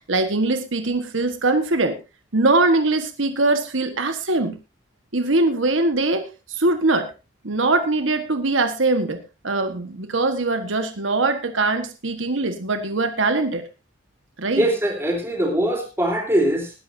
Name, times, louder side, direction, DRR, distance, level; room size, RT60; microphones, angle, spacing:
voice 1, 0.1-2.0 2.3-4.6 5.1-7.1 7.4-13.7 14.4-14.7, right 2 dB, 80° right, 8 dB, 1.6 m, -22 dB
voice 2, 14.6-16.7, right 1 dB, 15° right, 2 dB, 3.9 m, -21 dB
19.5 x 11.0 x 2.8 m, 0.27 s
head